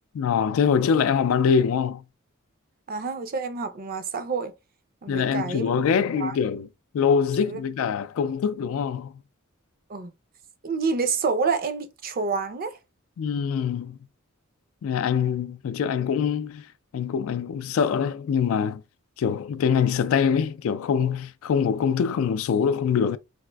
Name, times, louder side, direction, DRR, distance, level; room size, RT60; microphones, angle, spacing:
voice 1, 0.1-2.0 5.1-6.7 6.9-9.1 13.2-14.0 14.8-16.7 16.9-18.8 19.2-23.2, left 7 dB, 70° left, 0.3 m, -24 dB
voice 2, 2.9-4.5 5.0-5.7 6.2-6.4 7.4-7.6 9.9-10.1 10.6-12.8, right 4 dB, 45° right, 0.5 m, -28 dB
4.1 x 2.5 x 2.2 m
head